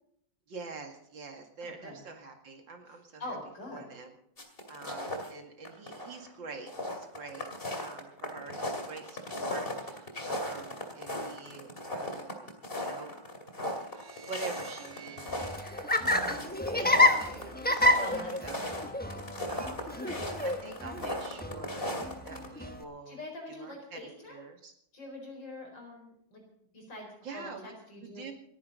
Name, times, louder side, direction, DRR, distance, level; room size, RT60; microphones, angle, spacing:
voice 1, 0.5-3.2 3.7-4.1 4.7-12.5 12.8-13.1 14.3-15.2 16.0-16.2 16.8-19.0 19.5-20.2 20.4-22.0 22.2-23.2 23.5-24.7 27.2-27.7 28.1-28.3, right 4 dB, 80° right, 3 dB, 2.8 m, -46 dB
voice 2, 1.6-2.0 3.2-4.0 16.0-16.5 16.7-17.2 18.0-18.9 23.1-24.4 24.9-26.4 26.7-28.2, left 1 dB, 75° left, 1 dB, 5.1 m, -44 dB
sound 1, 4.4-5.3 5.6-6.3 6.5-22.5, left 1 dB, 30° left, 2.6 m, -37 dB
sound 2, 13.8-17.1, right 6 dB, 50° right, 2.6 m, -52 dB
Laughter, 15.3-22.8, left 2 dB, 10° left, 0.6 m, -29 dB
28.5 x 10.0 x 4.0 m, 0.70 s
omnidirectional pair, 2.0 m